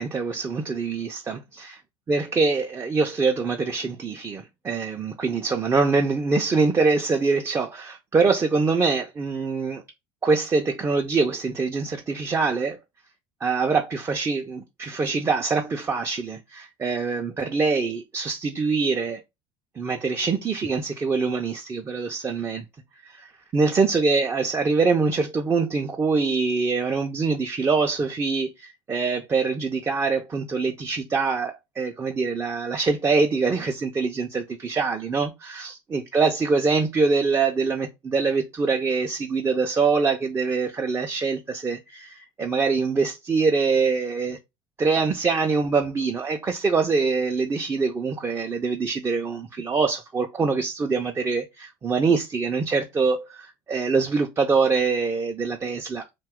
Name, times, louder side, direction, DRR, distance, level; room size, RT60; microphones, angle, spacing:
voice 1, 0.0-1.8 2.1-9.8 10.2-12.8 13.4-19.2 19.8-22.6 23.1-23.3 23.5-44.4 44.8-56.0, right 4 dB, 20° right, 0.4 m, -24 dB
2.7 x 2.3 x 3.5 m
supercardioid pair, 95°, 12 cm